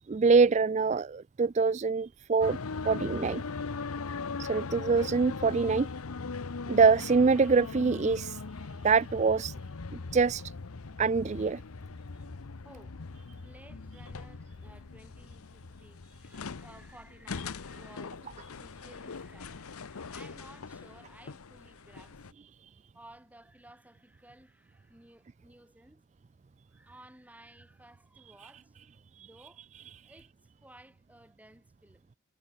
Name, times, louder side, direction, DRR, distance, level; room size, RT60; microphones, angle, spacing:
voice 1, 0.1-2.6 2.8-3.4 4.4-5.9 6.7-8.4 8.8-9.5 9.9-10.5 11.0-11.6 22.6-22.7 29.1-29.3 30.0-30.1, right 4 dB, 30° right, 0.3 m, -25 dB
sound 1, 2.4-22.3, left 4 dB, 85° left, 0.8 m, -40 dB
voice 2, 12.6-13.0 13.3-18.3 18.5-22.3 22.9-26.0 26.7-28.8 29.2-29.7 30.0-32.1, right 1 dB, 5° right, 6.4 m, -56 dB
head